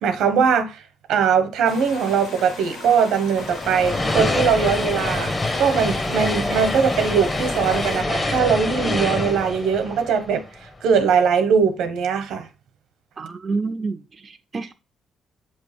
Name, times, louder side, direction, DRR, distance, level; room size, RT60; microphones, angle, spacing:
voice 1, 0.0-0.8 1.1-10.5 10.8-12.5, right 6 dB, 85° right, 1.1 m, -20 dB
sound 1, 1.6-8.0, left 3 dB, 85° left, 1.8 m, -37 dB
sound 2, 3.4-10.8, left 2 dB, 25° left, 1.1 m, -25 dB
voice 2, 13.2-14.7, right 4 dB, 35° right, 0.5 m, -28 dB
7.5 x 3.1 x 5.2 m
cardioid pair, 90°, 0 cm